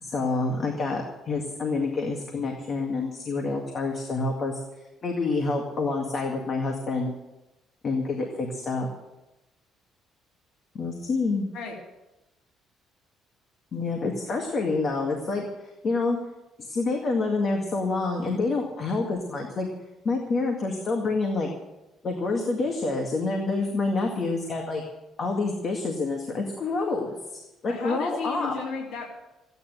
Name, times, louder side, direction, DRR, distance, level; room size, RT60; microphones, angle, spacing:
voice 1, 0.0-4.6 5.0-7.1 7.8-8.9 10.7-11.5 13.7-15.4 15.8-16.2 16.7-19.7 20.0-21.5 22.0-24.8 25.2-27.1 27.3-28.5, left 3 dB, 35° left, 1 dB, 2.1 m, -27 dB
voice 2, 27.6-29.1, left 5 dB, 75° left, -4 dB, 3.6 m, -33 dB
15.5 x 9.8 x 8.1 m, 0.99 s
cardioid pair, 160°, 0 cm